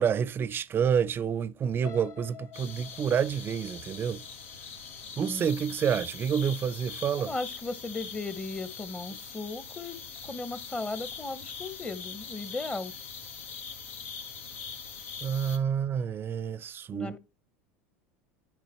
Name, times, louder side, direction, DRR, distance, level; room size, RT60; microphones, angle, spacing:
voice 1, 0.0-4.2 5.2-7.3 15.2-17.2, right 7 dB, 30° right, 0.5 m, -28 dB
sound 1, 1.8-5.8 6.3-6.6 6.9-7.0, left 10 dB, 45° left, 1.1 m, -49 dB
sound 2, 2.5-15.6, left 6 dB, 85° left, 1.5 m, -42 dB
voice 2, 7.3-10.0 10.2-12.9 16.9-17.2, left 3 dB, 15° left, 0.9 m, -36 dB
9.5 x 5.0 x 4.3 m
hypercardioid pair, 95°, 7 cm